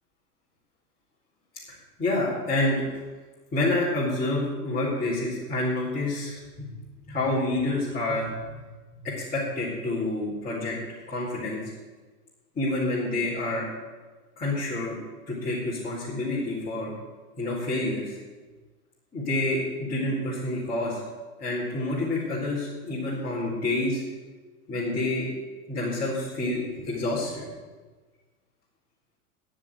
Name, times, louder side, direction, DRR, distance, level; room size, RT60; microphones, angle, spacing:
voice 1, 2.0-3.0 3.5-6.7 7.1-8.3 8.9-10.8 11.1-11.6 12.5-13.7 14.4-15.0 15.3-16.9 17.4-18.2 19.1-21.0 21.4-24.0 24.7-25.3 25.7-27.5, left 2 dB, 20° left, -9 dB, 4.4 m, -28 dB
11.0 x 7.5 x 9.2 m, 1.3 s
hypercardioid pair, 100°, 47 cm